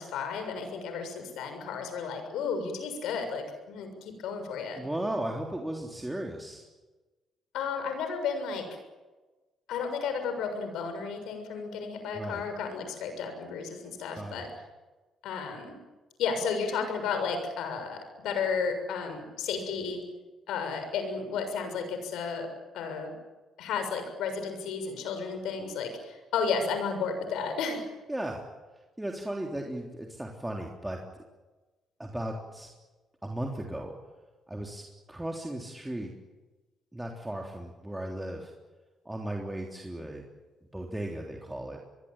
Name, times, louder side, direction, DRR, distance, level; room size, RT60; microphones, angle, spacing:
voice 1, 0.0-4.8 7.5-8.6 9.7-14.5 15.2-15.8 16.2-20.0 20.5-22.5 22.7-23.1 23.6-27.8, left 5 dB, 85° left, 7 dB, 6.7 m, -33 dB
voice 2, 4.8-6.6 12.1-12.4 14.1-14.5 28.1-28.4 29.0-31.0 32.0-32.7 33.2-33.9 34.5-36.1 36.9-38.5 39.0-40.2 40.7-41.8, right 1 dB, 10° right, 0 dB, 3.5 m, -36 dB
24.5 x 22.0 x 9.0 m, 1.2 s
cardioid pair, 90°, 0 cm